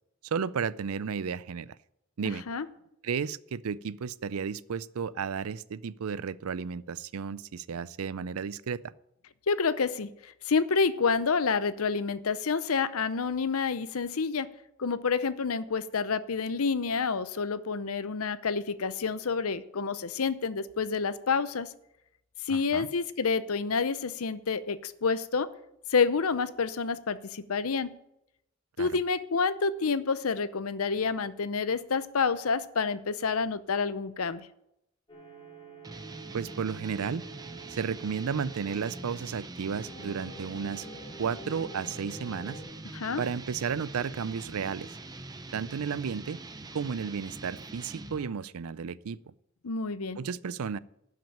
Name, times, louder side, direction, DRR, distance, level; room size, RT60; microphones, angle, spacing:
voice 1, 0.2-1.8 2.2-2.4 3.0-8.8 22.5-22.9 28.8-28.9 36.3-37.2 37.7-40.9 41.2-42.6 43.2-44.9 45.5-46.4 46.7-49.2 50.2-50.8, right 6 dB, 85° right, 0.5 m, -33 dB
voice 2, 9.5-14.5 14.8-21.7 22.5-25.5 25.9-28.0 28.8-34.5 42.9-43.2 49.6-50.2, left 5 dB, 80° left, 0.7 m, -28 dB
sound 1, 35.1-39.5 39.8-42.6, right 3 dB, 25° left, 3.6 m, -48 dB
sound 2, 35.8-48.4, right 2 dB, 20° right, 0.7 m, -44 dB
12.5 x 6.1 x 8.8 m
head